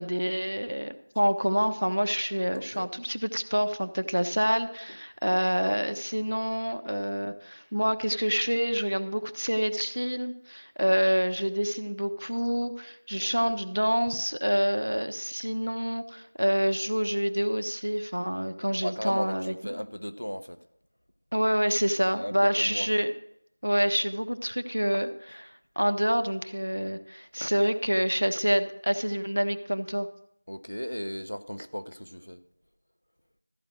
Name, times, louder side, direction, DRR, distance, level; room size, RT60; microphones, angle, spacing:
voice 1, 0.0-19.5 21.3-23.1 23.6-25.1 25.8-30.1, equal, 90° right, 1.1 m, -27 dB
voice 2, 2.5-2.9 5.2-5.8 13.2-13.6 18.8-20.6 22.1-22.9 24.9-25.0 25.3-25.4 30.5-32.4, equal, 85° left, 0.9 m, -37 dB
14.0 x 5.0 x 7.6 m
figure-of-eight pair, 175°, 0 cm